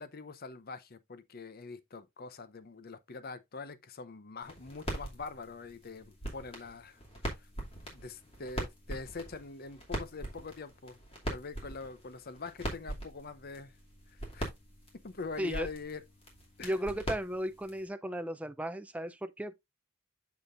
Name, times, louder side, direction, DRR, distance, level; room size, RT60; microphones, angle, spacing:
voice 1, 0.0-7.0 7.3-7.5 7.9-11.0 11.3-13.7 14.1-14.5 15.0-16.0 16.6-16.8, left 4 dB, 45° left, 0.7 m, -44 dB
sound 1, 4.4-17.9, right 1 dB, 30° left, 2.6 m, -42 dB
voice 2, 16.6-19.6, equal, 5° right, 0.4 m, -35 dB
7.1 x 6.6 x 2.5 m
head